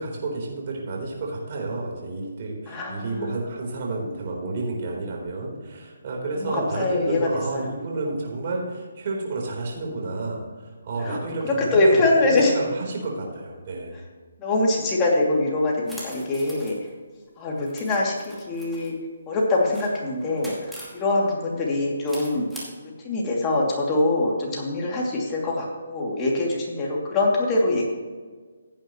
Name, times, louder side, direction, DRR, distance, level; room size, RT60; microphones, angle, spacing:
voice 1, 0.0-14.0, right 2 dB, 45° right, -1 dB, 3.9 m, -31 dB
voice 2, 2.7-3.3 6.4-7.7 11.0-11.2 11.6-12.6 14.4-16.8 17.4-18.9 19.3-22.5 23.0-27.9, left 2 dB, 20° left, -3 dB, 2.7 m, -23 dB
sound 1, 15.9-16.9 17.6-18.9 19.5-21.0 22.1-22.6, equal, ahead, 2.4 m, -42 dB
16.0 x 9.0 x 3.1 m, 1.5 s
hypercardioid pair, 160°, 0 cm